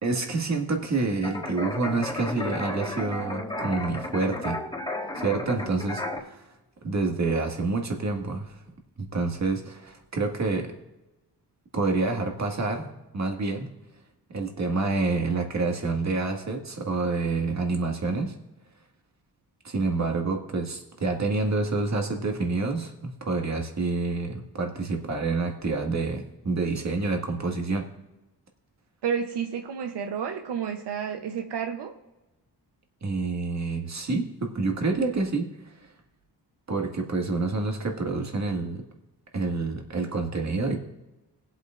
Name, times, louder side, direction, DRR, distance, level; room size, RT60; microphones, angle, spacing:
voice 1, 0.0-4.6 5.2-6.4 6.8-8.5 9.0-10.7 11.7-13.7 14.3-18.3 19.6-27.9 33.0-35.9 36.7-38.8 39.3-40.8, right 3 dB, 40° right, 2 dB, 1.8 m, -28 dB
sound 1, 1.2-6.2, left 2 dB, 15° left, 2.2 m, -33 dB
voice 2, 29.0-32.0, right 7 dB, 90° right, 6 dB, 0.8 m, -30 dB
20.0 x 8.1 x 2.5 m, 1.0 s
wide cardioid pair, 105°, 40 cm